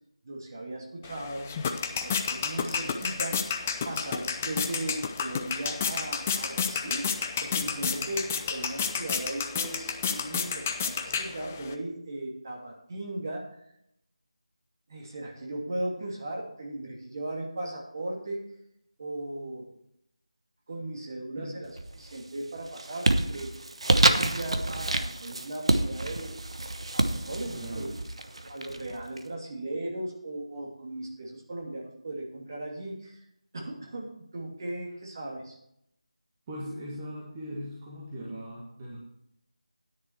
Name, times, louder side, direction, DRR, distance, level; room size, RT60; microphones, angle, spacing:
voice 1, 0.2-1.6 2.0-3.4 3.8-7.1 7.4-13.4 14.9-18.4 19.0-19.7 20.7-23.5 23.9-26.3 26.9-27.9 28.5-33.2 33.5-35.6, right 1 dB, 35° right, 0 dB, 2.6 m, -37 dB
sound 1, 1.0-11.7, left 6 dB, 20° left, 0.6 m, -31 dB
sound 2, 21.7-22.2 22.6-29.2, right 2 dB, 60° right, 1.1 m, -28 dB
voice 2, 27.5-28.0 36.5-39.0, equal, 20° right, -6 dB, 1.9 m, -39 dB
10.5 x 10.0 x 4.5 m, 0.76 s
figure-of-eight pair, 165°, 3 cm